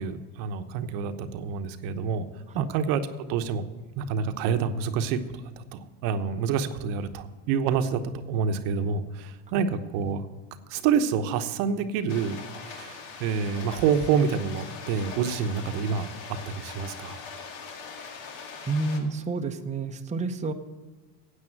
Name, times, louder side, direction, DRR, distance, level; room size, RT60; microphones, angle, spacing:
voice 1, 0.0-2.3 2.5-3.6 4.0-10.3 10.7-12.4 12.6-16.1 16.5-17.2, right 6 dB, 70° right, 8 dB, 1.1 m, -27 dB
sound 1, 12.1-19.0, left 5 dB, 60° left, 2.2 m, -41 dB
voice 2, 18.7-20.5, right 3 dB, 15° right, 5 dB, 0.8 m, -29 dB
9.8 x 8.5 x 7.7 m, 1.3 s
supercardioid pair, 100°, 49 cm